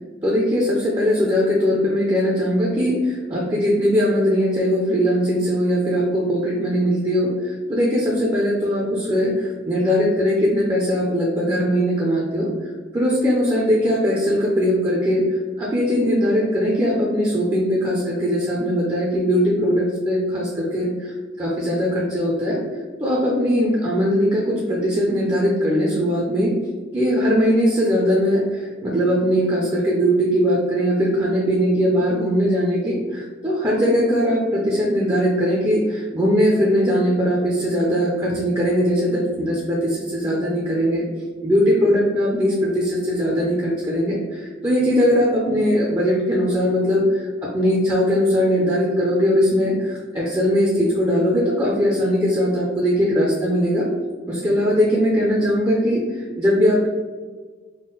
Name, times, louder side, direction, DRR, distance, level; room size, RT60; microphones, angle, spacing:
voice 1, 0.2-22.6 23.0-26.6 26.9-41.0 41.4-53.9 54.3-56.9, equal, 20° right, -3 dB, 0.4 m, -20 dB
3.7 x 2.0 x 3.8 m, 1.4 s
head